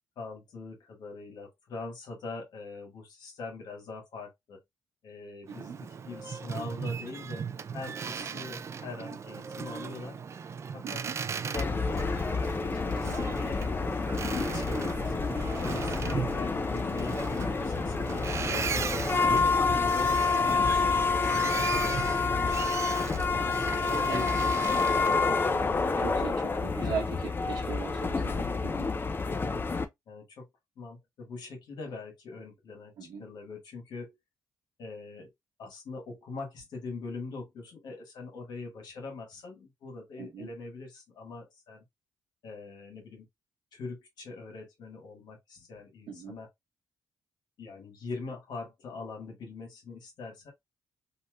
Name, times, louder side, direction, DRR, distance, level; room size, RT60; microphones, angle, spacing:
voice 1, 0.1-4.6 5.0-7.5 7.7-10.2 10.7-11.0 11.3-13.7 14.3-19.4 19.8-23.6 23.9-25.7 26.2-27.0 29.4-29.6 30.1-30.5 30.8-34.2 34.8-35.3 35.6-41.8 42.4-43.3 43.7-46.5 47.6-50.5, left 3 dB, 75° left, 1.5 m, -43 dB
Boat Water vehicle, 5.5-25.3, right 6 dB, 40° right, 0.3 m, -37 dB
voice 2, 5.5-5.8 8.2-8.5 10.8-11.1 19.1-19.4 24.0-24.3 25.9-28.9 33.0-33.3 40.2-40.5 46.1-46.4, right 6 dB, 75° right, 0.9 m, -39 dB
sound 1, 11.5-29.8, left 4 dB, 30° left, 0.5 m, -28 dB
3.2 x 2.7 x 2.3 m
cardioid pair, 80°, 7 cm